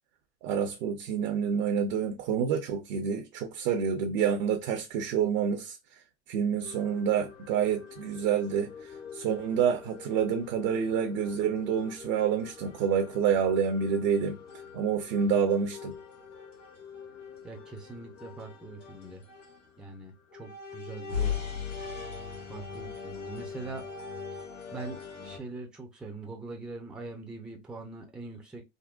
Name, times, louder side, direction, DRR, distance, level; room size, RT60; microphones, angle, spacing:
voice 1, 0.4-5.8 6.3-14.4 14.7-15.9, right 7 dB, 45° right, 0.6 m, -28 dB
sound 1, 6.6-25.4, left 6 dB, 75° left, 1.7 m, -41 dB
voice 2, 17.4-19.2 19.8-21.4 22.5-23.8 24.7-28.6, right 3 dB, ahead, 0.5 m, -42 dB
3.7 x 2.1 x 2.4 m
hypercardioid pair, 115°, 37 cm